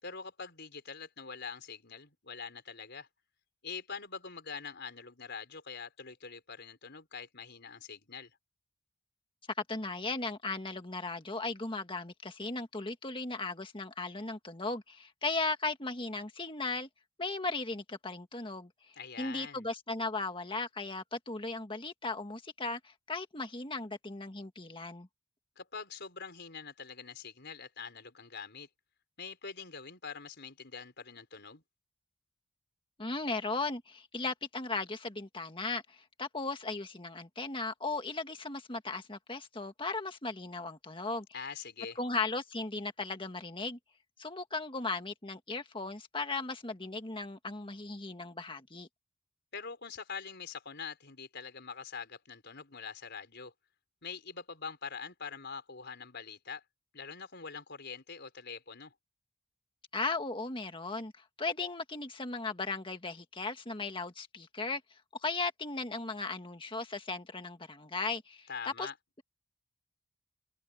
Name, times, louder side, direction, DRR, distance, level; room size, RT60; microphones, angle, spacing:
voice 1, 0.0-3.1 3.6-8.3 19.0-19.7 25.6-28.7 29.2-31.6 41.3-42.0 49.5-53.5 54.0-56.6 56.9-58.9 68.5-68.9, left 5 dB, 50° left, 5.0 m, -44 dB
voice 2, 9.7-16.9 17.2-18.7 19.2-25.1 33.0-41.3 42.0-43.8 44.2-48.9 59.9-64.8 65.2-68.5 68.8-68.9, left 3 dB, 25° left, 1.8 m, -37 dB
open air
head